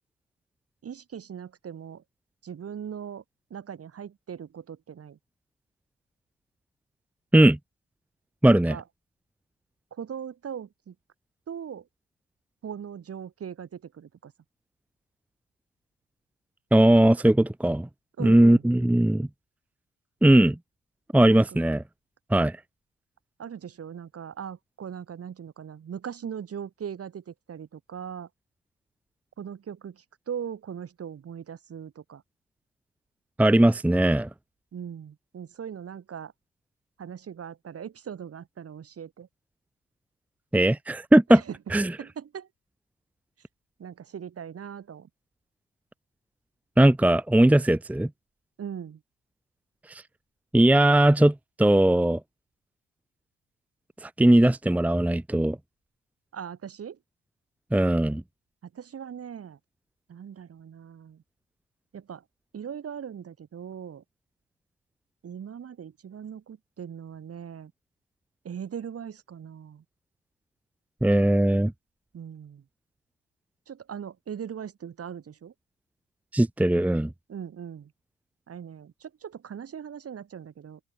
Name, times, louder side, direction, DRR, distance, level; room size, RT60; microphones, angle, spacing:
voice 1, 0.8-2.0 2.4-3.2 3.5-5.2 8.4-8.8 9.9-10.9 11.5-11.9 12.6-14.3 18.2-18.7 21.3-21.4 23.4-28.3 29.4-32.2 34.7-36.3 37.0-39.3 41.3-41.6 42.0-42.5 43.8-45.1 48.6-49.0 56.3-57.0 58.6-59.6 60.1-61.2 61.9-62.2 62.5-64.0 65.2-67.7 68.4-69.8 72.1-72.6 73.7-75.5 77.3-77.9 78.5-80.8, right 8 dB, 50° right, 3.3 m, -39 dB
voice 2, 8.4-8.8 16.7-17.9 18.2-19.3 20.2-20.6 21.1-21.8 22.3-22.6 33.4-34.3 40.5-41.4 41.7-41.9 46.8-48.1 49.9-50.0 50.5-52.2 54.0-55.6 57.7-58.2 71.0-71.7 76.3-77.1, right 1 dB, 5° right, 0.9 m, -19 dB
open air
cardioid pair, 90°, 30 cm